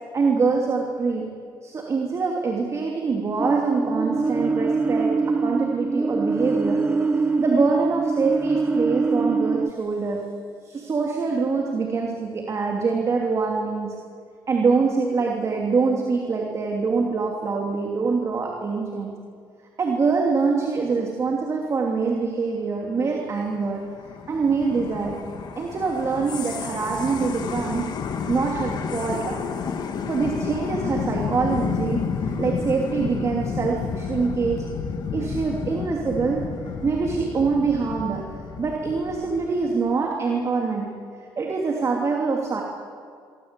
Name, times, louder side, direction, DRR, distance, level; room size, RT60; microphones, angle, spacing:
voice 1, 0.1-1.3 1.6-6.9 7.4-10.3 10.6-14.0 14.5-19.2 19.8-23.9 24.3-25.2 25.6-28.0 28.3-29.4 30.1-34.7 35.1-38.3 38.6-41.0 41.4-42.6, right 4 dB, 35° right, 1 dB, 2.9 m, -24 dB
onboard alien craft, 3.4-9.7, right 3 dB, 15° right, 1.0 m, -23 dB
sound 1, 23.2-39.7, left 6 dB, 55° left, 2.7 m, -31 dB
27.5 x 24.5 x 8.3 m, 2.2 s
cardioid pair, 130°, 9 cm